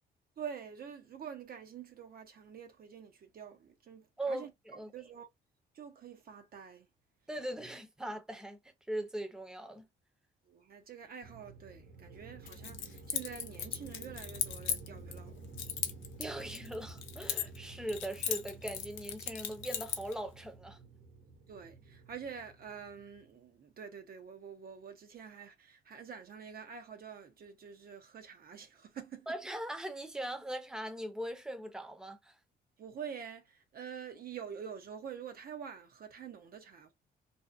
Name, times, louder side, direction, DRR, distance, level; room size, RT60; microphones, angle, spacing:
voice 1, 0.4-5.3 5.7-6.9 10.5-15.5 21.5-29.3 32.8-36.9, right 7 dB, 50° right, 0.5 m, -47 dB
voice 2, 4.2-4.9 7.3-8.6 8.9-9.9 16.2-20.8 29.3-32.4, right 1 dB, 5° right, 0.6 m, -40 dB
sound 1, 11.2-23.5, right 3 dB, 75° right, 1.2 m, -51 dB
Keys jangling, 12.5-15.2 15.6-17.6 17.9-20.1, left 9 dB, 80° left, 0.5 m, -37 dB
2.6 x 2.0 x 2.4 m
cardioid pair, 90°, 20 cm